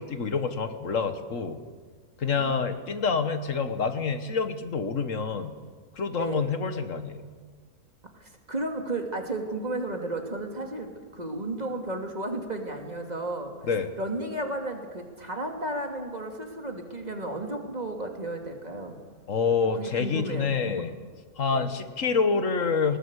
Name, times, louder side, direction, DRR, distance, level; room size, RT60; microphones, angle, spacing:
voice 1, 0.0-1.6 2.2-5.5 5.9-7.2 13.7-13.9 19.3-20.9 21.4-23.0, left 5 dB, 60° left, 9 dB, 1.7 m, -27 dB
voice 2, 2.2-2.7 6.2-6.5 8.2-13.5 14.0-19.0 19.8-20.6 21.5-21.7, right 2 dB, 30° right, 3 dB, 2.5 m, -33 dB
20.0 x 19.0 x 8.3 m, 1.5 s
omnidirectional pair, 1.5 m